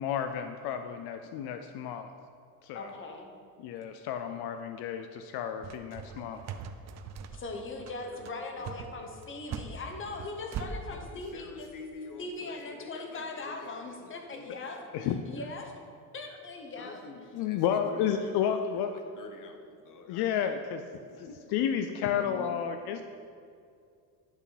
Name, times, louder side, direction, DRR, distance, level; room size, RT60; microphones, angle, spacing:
voice 1, 0.0-2.1 2.6-2.9 3.6-6.4 14.9-15.2 17.3-18.9 20.1-20.8 21.5-23.1, left 8 dB, 80° left, 7 dB, 0.6 m, -31 dB
voice 2, 2.7-3.3 7.3-11.7 12.2-14.8 15.2-15.7 16.1-17.0 22.0-22.5, left 3 dB, 30° left, 4 dB, 1.1 m, -40 dB
sound 1, 5.6-10.7, right 8 dB, 45° right, 0.6 m, -40 dB
voice 3, 8.0-9.0 10.9-15.1 16.8-20.6 20.9-21.4, left 4 dB, 55° left, 5 dB, 1.1 m, -48 dB
10.5 x 5.6 x 4.1 m, 2.4 s
cardioid pair, 115°, 38 cm